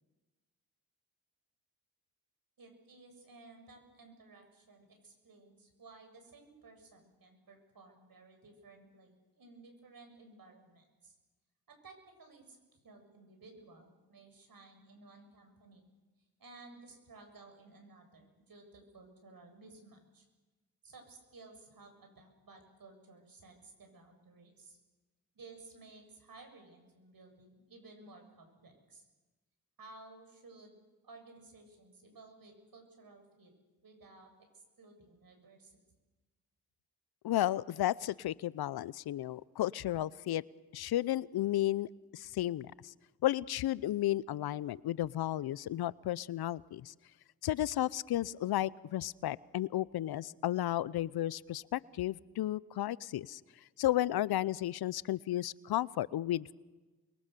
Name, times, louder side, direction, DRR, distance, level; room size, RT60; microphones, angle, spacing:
voice 1, 2.6-11.2 11.7-15.9 16.4-20.3 20.8-24.8 25.3-29.1 29.8-33.5 33.8-35.8, right 3 dB, 60° right, 4 dB, 7.2 m, -56 dB
voice 2, 37.2-40.4 40.7-42.9 43.2-46.9 47.4-53.4 53.8-56.5, left 13 dB, 70° left, 21 dB, 0.7 m, -33 dB
28.5 x 22.5 x 6.8 m, 1.2 s
supercardioid pair, 40°, 39 cm